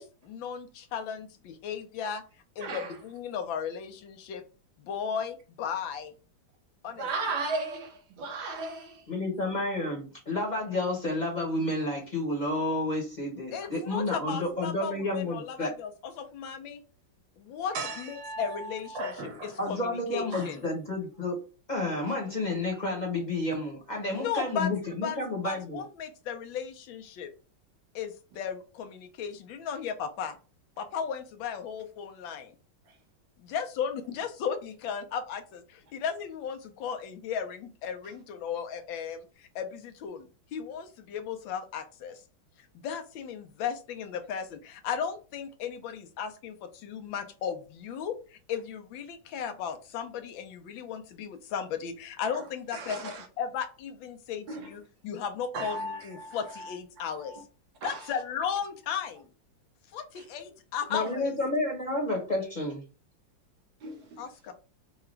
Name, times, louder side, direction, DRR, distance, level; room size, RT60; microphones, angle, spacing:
voice 1, 0.0-2.2 2.6-4.4 4.8-6.1 6.8-7.1 13.5-16.8 17.4-20.6 24.1-24.7 25.0-25.2 25.4-27.3 27.9-30.4 30.8-32.5 33.4-42.2 42.8-53.1 53.4-57.4 57.8-59.3 59.9-61.3 64.2-64.5, left 7 dB, 90° left, 1.5 m, -35 dB
voice 2, 7.0-9.0 17.7-19.5 20.3-20.5 52.7-53.2 54.5-54.6 55.5-56.7 57.3-57.4 57.8-58.0 63.8-64.2, right 3 dB, 75° right, 1.7 m, -36 dB
voice 3, 9.1-15.7 19.6-21.4 21.7-25.8 60.9-62.8, left 2 dB, 30° left, 0.9 m, -30 dB
4.7 x 2.3 x 3.1 m
omnidirectional pair, 2.1 m